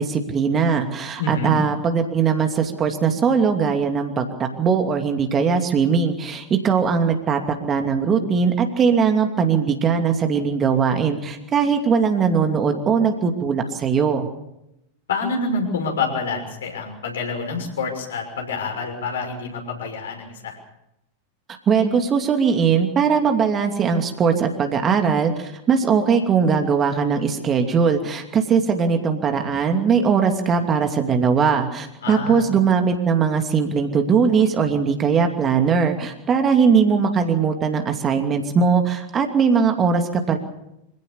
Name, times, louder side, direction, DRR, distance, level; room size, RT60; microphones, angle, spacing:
voice 1, 0.0-4.3 4.6-14.3 21.7-40.4, right 6 dB, 25° right, 5 dB, 2.7 m, -20 dB
voice 2, 1.2-1.5 15.1-20.6 32.0-32.4, left 3 dB, 65° left, 2 dB, 6.2 m, -27 dB
26.0 x 16.5 x 7.1 m, 0.85 s
figure-of-eight pair, 90°, 0 cm